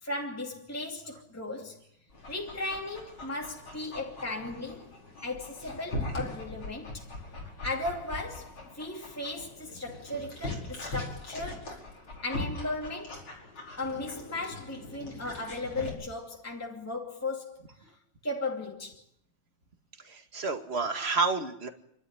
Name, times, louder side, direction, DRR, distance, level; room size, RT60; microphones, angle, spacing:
voice 1, 0.0-1.8 2.3-4.9 5.2-7.1 7.6-11.7 12.2-13.2 13.8-17.9 18.2-19.0, left 2 dB, 5° left, 2.5 m, -36 dB
Dog, 2.1-15.9, left 2 dB, 85° left, 6.0 m, -41 dB
voice 2, 20.0-21.7, right 4 dB, 30° right, 2.1 m, -30 dB
29.0 x 13.0 x 9.9 m
omnidirectional pair, 2.2 m